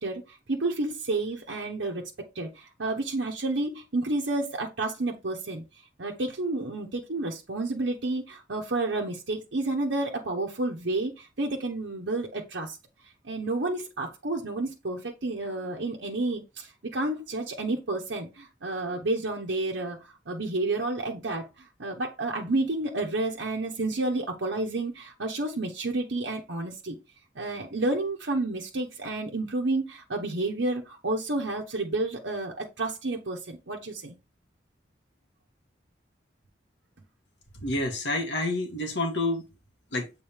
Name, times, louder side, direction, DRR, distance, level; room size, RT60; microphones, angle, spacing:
voice 1, 0.0-2.0 2.3-5.6 6.0-12.8 13.2-27.0 27.3-34.1, right 2 dB, 80° right, 1.0 m, -30 dB
voice 2, 37.5-39.5 39.9-40.1, left 2 dB, 70° left, 1.9 m, -28 dB
7.3 x 3.8 x 3.5 m
head